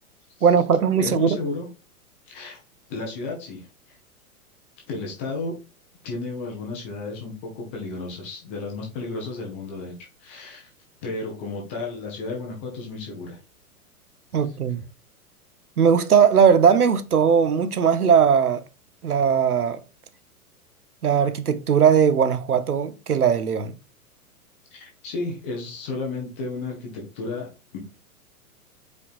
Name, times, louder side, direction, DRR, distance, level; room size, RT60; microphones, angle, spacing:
voice 1, 0.4-1.4 14.3-14.8 15.8-18.6 19.0-19.8 21.0-23.7, right 7 dB, 75° right, 0.7 m, -19 dB
voice 2, 1.0-1.7 2.3-2.6 2.9-3.7 4.9-5.5 6.0-10.7 11.0-13.4 14.5-14.6 24.7-27.8, left 3 dB, 10° left, 0.3 m, -33 dB
5.1 x 4.4 x 2.4 m
figure-of-eight pair, 105°, 45 cm